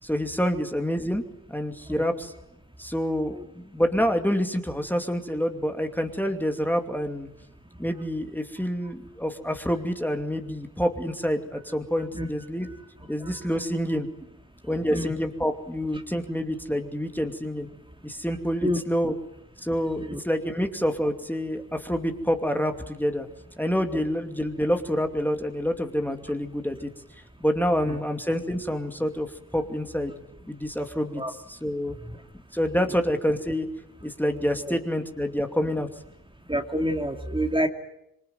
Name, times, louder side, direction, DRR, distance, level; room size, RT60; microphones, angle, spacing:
voice 1, 0.0-1.2 1.5-2.3 2.8-7.3 7.8-12.7 13.1-14.1 14.7-17.7 18.0-19.1 19.6-23.3 23.6-26.9 27.4-29.3 29.5-30.2 30.5-31.9 32.5-33.7 34.0-35.9, equal, 5° left, 5 dB, 2.6 m, -27 dB
voice 2, 36.5-37.7, equal, 15° right, 4 dB, 2.6 m, -28 dB
26.5 x 23.5 x 9.4 m, 0.81 s
wide cardioid pair, 75°, 35 cm